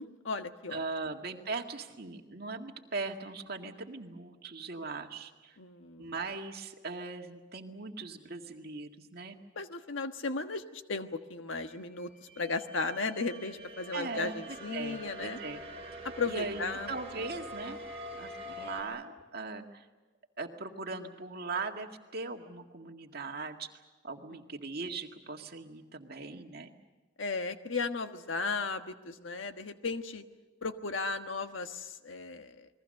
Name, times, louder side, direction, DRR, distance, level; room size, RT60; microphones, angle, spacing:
voice 1, 0.0-0.8 5.6-6.1 9.5-15.4 16.0-16.9 24.3-24.4 27.2-30.2 30.6-32.7, left 4 dB, 80° left, 7 dB, 1.4 m, -35 dB
voice 2, 0.7-5.6 6.0-9.4 13.9-15.6 16.2-17.8 18.1-19.8 20.4-23.7 24.0-26.7, right 3 dB, 55° right, 3 dB, 2.0 m, -39 dB
sound 1, 11.7-18.8, equal, 30° right, 4.8 m, -45 dB
29.0 x 21.5 x 6.6 m, 1.2 s
head